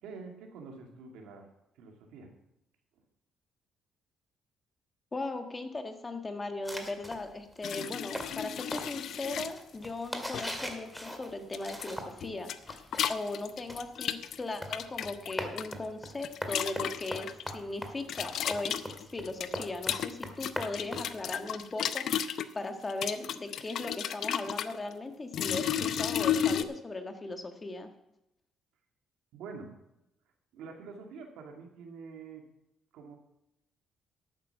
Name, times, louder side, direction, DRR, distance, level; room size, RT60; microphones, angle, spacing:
voice 1, 0.0-1.5 1.8-2.3 29.3-29.7 30.5-32.5 32.9-33.2, right 4 dB, 85° right, 2 dB, 2.3 m, -46 dB
voice 2, 5.1-12.8 13.1-17.3 17.5-27.9, left 2 dB, 25° left, 6 dB, 1.5 m, -38 dB
sound 1, 6.7-12.3 12.6-21.6, equal, 5° left, 1.9 m, -41 dB
sound 2, 7.6-9.5 10.3-10.6 11.5-11.9 12.2-15.7 16.1-17.5 18.1-22.5 22.9-24.7 25.3-26.6, left 9 dB, 65° left, 0.6 m, -33 dB
11.0 x 8.9 x 5.7 m, 0.85 s
cardioid pair, 85°, 0 cm